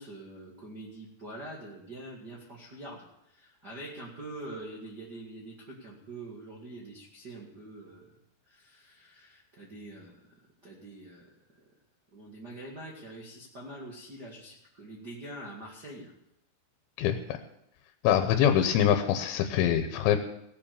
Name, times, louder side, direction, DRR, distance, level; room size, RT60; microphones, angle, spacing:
voice 1, 0.0-8.1 8.4-11.3 12.1-16.1, right 1 dB, 40° right, -5 dB, 1.6 m, -45 dB
voice 2, 17.0-17.4 18.0-20.2, left 10 dB, 85° left, 7 dB, 3.2 m, -24 dB
17.5 x 7.2 x 7.0 m, 0.81 s
omnidirectional pair, 5.3 m